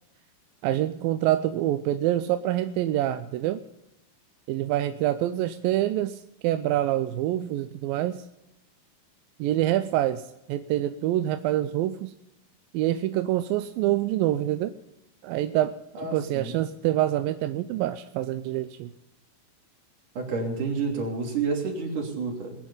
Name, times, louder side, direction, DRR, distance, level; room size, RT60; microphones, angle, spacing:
voice 1, 0.6-3.6 4.5-8.2 9.4-10.2 10.5-12.1 12.7-14.7 15.2-15.7 16.1-18.9, right 13 dB, 90° right, 9 dB, 2.4 m, -26 dB
voice 2, 15.9-16.6 20.2-22.6, right 4 dB, 65° right, 0 dB, 4.5 m, -29 dB
20.5 x 10.0 x 5.5 m, 0.86 s
omnidirectional pair, 4.0 m